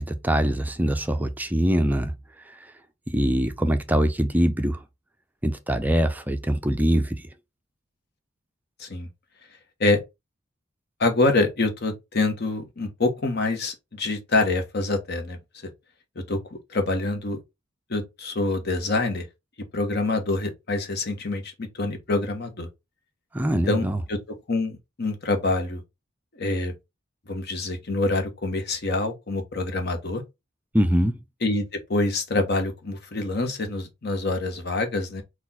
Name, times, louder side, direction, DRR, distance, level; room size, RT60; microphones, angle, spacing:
voice 1, 0.0-2.2 2.5-2.6 3.1-4.8 5.4-7.2 23.3-24.0 30.7-31.2, equal, 10° right, 0.4 m, -23 dB
voice 2, 11.0-15.7 16.2-16.4 16.7-17.4 17.9-19.3 19.7-22.7 23.7-24.2 24.5-25.8 26.3-26.7 27.3-30.2 31.4-35.2, left 2 dB, 55° left, 1.1 m, -26 dB
4.2 x 2.4 x 4.1 m
head